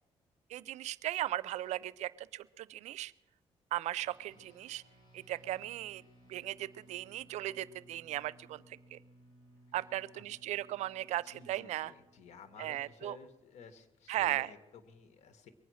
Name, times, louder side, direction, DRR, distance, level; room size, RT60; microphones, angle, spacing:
voice 1, 0.5-3.1 3.7-4.8 5.1-6.0 6.3-9.0 9.7-11.9 12.6-13.2 14.1-14.5, right 14 dB, 85° right, 20 dB, 0.4 m, -37 dB
sound 1, 4.0-13.7, right 1 dB, 40° left, 5.0 m, -62 dB
voice 2, 9.8-10.2 11.2-15.5, left 6 dB, 80° left, 10 dB, 1.6 m, -54 dB
22.5 x 9.4 x 6.3 m, 1.0 s
cardioid pair, 80°, 12 cm